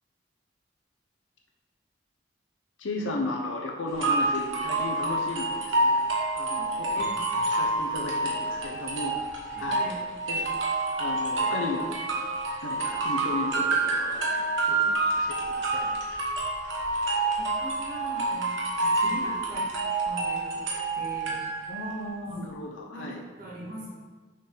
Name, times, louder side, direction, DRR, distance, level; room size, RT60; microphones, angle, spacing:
voice 1, 2.8-6.0 6.4-7.0 7.5-9.2 9.6-9.9 10.3-10.5 11.0-11.9 12.6-15.9 21.7-23.2, left 2 dB, 85° left, 1 dB, 0.7 m, -35 dB
sound 1, 4.0-21.9, right 2 dB, 80° right, 1.1 m, -28 dB
voice 2, 6.6-7.5 9.5-10.0 17.4-19.7 20.0-20.7 20.9-21.7 22.3-22.4 22.9-23.9, equal, 45° right, -6 dB, 1.5 m, -41 dB
6.3 x 3.8 x 3.8 m, 1.3 s
head